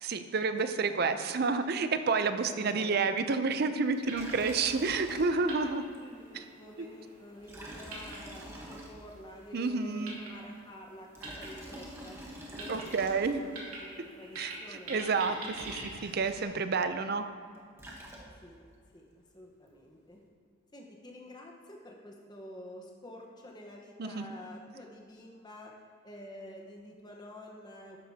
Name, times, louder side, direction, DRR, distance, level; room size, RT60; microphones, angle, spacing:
voice 1, 0.0-5.8 6.3-6.4 9.5-10.2 12.7-13.4 14.4-17.2 24.0-24.4, right 4 dB, 50° right, 9 dB, 0.5 m, -30 dB
voice 2, 0.5-1.0 2.4-3.0 5.9-12.2 12.5-12.8 13.1-15.2 18.4-18.6 18.9-19.1 19.3-20.2 20.7-25.7 26.0-28.0, left 1 dB, 20° left, 0 dB, 1.1 m, -49 dB
sound 1, 3.8-16.4, right 2 dB, 85° right, 2.6 m, -47 dB
Liquid, 4.1-5.7 5.9-6.0 7.4-9.3 10.9-13.6 15.2-15.3 15.5-16.4 17.5-18.6, equal, 10° right, 1.1 m, -46 dB
12.5 x 9.2 x 2.8 m, 2.3 s
head